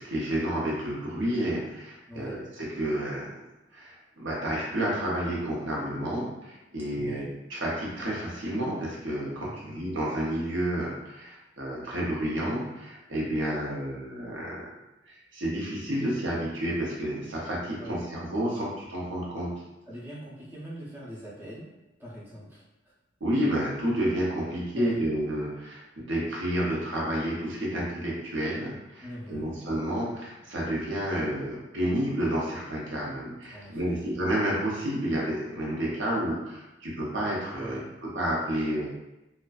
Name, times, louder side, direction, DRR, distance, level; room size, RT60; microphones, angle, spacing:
voice 1, 0.0-3.3 3.7-14.7 15.1-19.5 23.2-38.9, right 1 dB, 75° right, -5 dB, 0.7 m, -30 dB
voice 2, 2.1-2.4 6.8-7.4 9.4-9.8 17.8-18.0 19.9-21.7 22.0-22.9 24.7-25.1 29.0-29.6 33.5-34.0 37.6-37.9, equal, 10° right, -7 dB, 0.4 m, -42 dB
2.5 x 2.2 x 2.3 m, 0.96 s
head